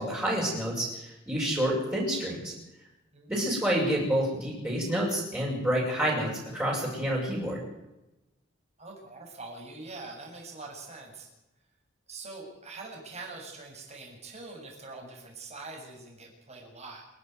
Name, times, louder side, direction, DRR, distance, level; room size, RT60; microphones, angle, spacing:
voice 1, 0.0-2.5 3.3-7.6, right 1 dB, 10° right, -7 dB, 7.5 m, -28 dB
voice 2, 3.1-3.6 8.8-11.3 12.1-17.1, right 3 dB, 35° right, 1 dB, 7.5 m, -44 dB
28.0 x 12.0 x 9.6 m, 0.96 s
head